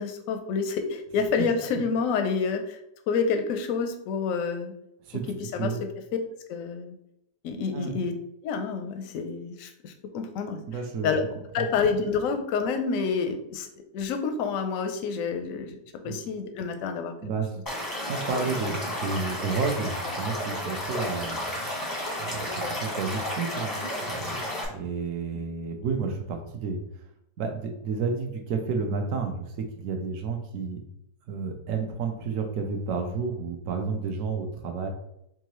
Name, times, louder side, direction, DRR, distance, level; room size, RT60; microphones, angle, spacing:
voice 1, 0.0-2.8 3.1-4.7 5.5-5.7 6.5-6.9 7.4-8.1 8.4-10.6 11.0-11.2 11.5-13.7 13.9-15.8 16.0-17.3 18.4-18.5, left 5 dB, 70° left, 6 dB, 0.8 m, -28 dB
voice 2, 10.7-11.1 11.6-11.7 16.0-16.2 17.2-17.5 18.0-21.8 22.2-23.7 24.1-24.3 24.7-26.8 27.4-30.8 31.3-34.9, right 5 dB, 65° right, 4 dB, 0.9 m, -31 dB
Stream / Liquid, 17.7-24.7, left 1 dB, 20° left, 0.6 m, -32 dB
4.7 x 2.5 x 3.0 m, 0.79 s
omnidirectional pair, 1.8 m